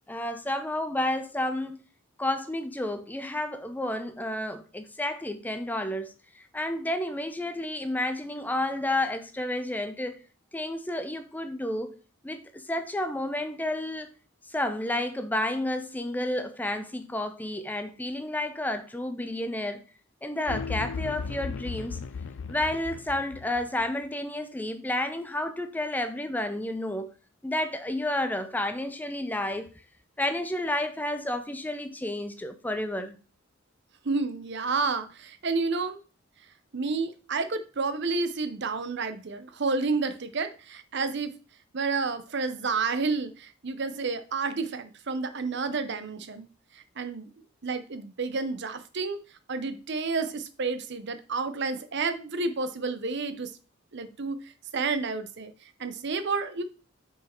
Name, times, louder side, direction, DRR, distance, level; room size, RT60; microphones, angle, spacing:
voice 1, 0.1-1.8 2.2-10.2 10.5-12.0 12.2-14.1 14.5-19.8 20.2-22.0 22.5-27.1 27.4-29.7 30.2-33.2, left 1 dB, 10° left, 0.6 m, -31 dB
sound 1, 20.5-23.9, left 5 dB, 70° left, 0.4 m, -36 dB
voice 2, 34.0-36.0 36.7-41.3 41.7-46.5 46.7-47.3 47.6-49.2 49.5-53.5 53.9-55.5 55.8-56.6, right 4 dB, 55° right, 0.7 m, -30 dB
6.3 x 4.7 x 4.4 m
head